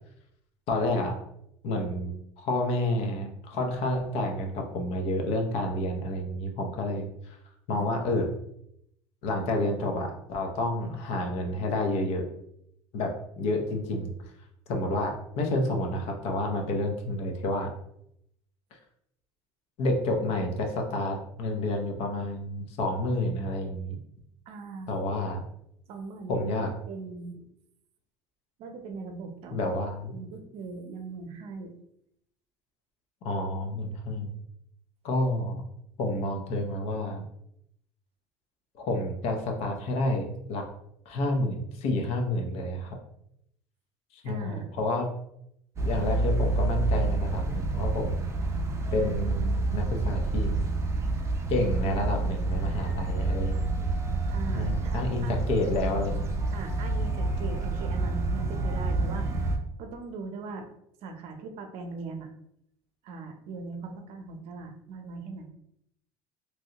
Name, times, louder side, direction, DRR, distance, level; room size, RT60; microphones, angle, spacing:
voice 1, 0.7-1.2 1.6-7.4 7.7-8.3 9.2-12.2 12.9-14.1 14.7-17.7 19.8-24.0 24.9-25.4 26.3-26.7 29.5-30.1 33.2-34.3 35.0-35.6 36.0-37.2 38.8-40.7 41.1-43.0 44.1-45.1 45.8-48.3 48.9-50.5 51.5-53.9 54.5-56.4, left 1 dB, 65° left, 3 dB, 0.8 m, -29 dB
voice 2, 24.5-25.0 25.9-27.5 28.6-31.7 44.2-44.7 54.3-55.3 56.5-60.7 61.0-62.3 63.0-65.5, right 4 dB, 60° right, 5 dB, 0.6 m, -40 dB
sound 1, 45.8-59.6, right 2 dB, 25° right, 0.6 m, -28 dB
3.1 x 2.7 x 2.8 m, 0.74 s
supercardioid pair, 110°, 11 cm